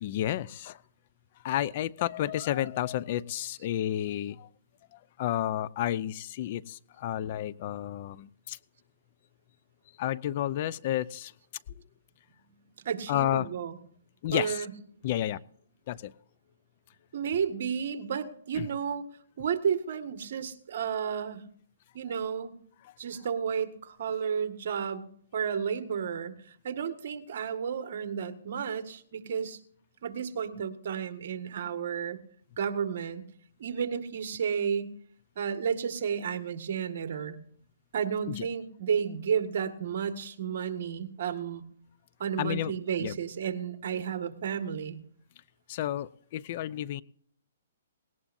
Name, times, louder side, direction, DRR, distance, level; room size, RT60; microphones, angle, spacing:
voice 1, 0.0-0.8 1.4-4.5 4.9-8.6 10.0-11.3 13.1-13.5 14.2-14.7 15.0-15.4 15.9-16.1 18.6-18.7 22.8-22.9 38.3-38.5 42.4-42.7 43.0-43.1 45.7-47.0, left 12 dB, 40° left, 18 dB, 0.5 m, -31 dB
voice 2, 12.5-13.8 14.3-14.8 17.1-19.1 19.4-21.4 21.9-22.5 23.0-29.6 30.0-32.2 32.6-33.2 33.6-34.9 35.4-37.4 37.9-41.6 42.2-45.0, right 7 dB, 55° right, 8 dB, 1.8 m, -32 dB
19.0 x 18.0 x 2.7 m, 0.62 s
hypercardioid pair, 150°, 0 cm